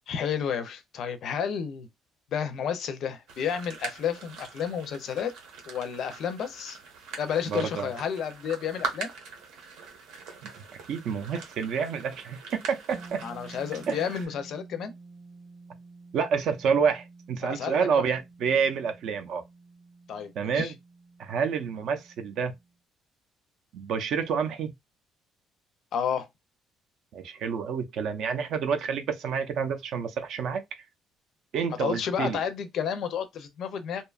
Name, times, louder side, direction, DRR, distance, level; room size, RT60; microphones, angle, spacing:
voice 1, 0.1-1.9 2.3-5.3 5.7-6.8 7.2-9.1 13.2-14.9 17.4-18.1 20.1-20.7 25.9-26.3 31.8-34.0, left 8 dB, 50° left, 0.4 m, -31 dB
sound 1, 3.3-14.3, right 5 dB, 80° right, 0.9 m, -42 dB
voice 2, 7.5-7.9 10.4-13.2 13.9-14.0 16.1-19.4 20.4-20.7 21.2-22.5 23.7-24.7 27.1-30.6 31.5-32.4, right 6 dB, 55° right, 0.4 m, -28 dB
sound 2, 12.9-22.7, right 3 dB, 10° right, 0.8 m, -50 dB
2.7 x 2.2 x 2.3 m
cardioid pair, 175°, 0 cm